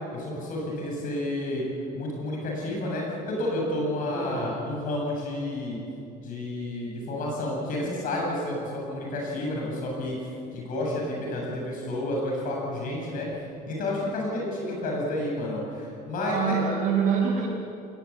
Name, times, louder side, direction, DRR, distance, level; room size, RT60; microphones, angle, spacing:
voice 1, 0.1-1.6 1.9-5.8 6.2-10.2 10.5-16.6, left 1 dB, 55° left, -2 dB, 8.0 m, -30 dB
voice 2, 4.0-4.5 16.2-17.4, right 6 dB, 60° right, -5 dB, 6.1 m, -26 dB
21.5 x 20.5 x 8.6 m, 2.7 s
cardioid pair, 125°, 17 cm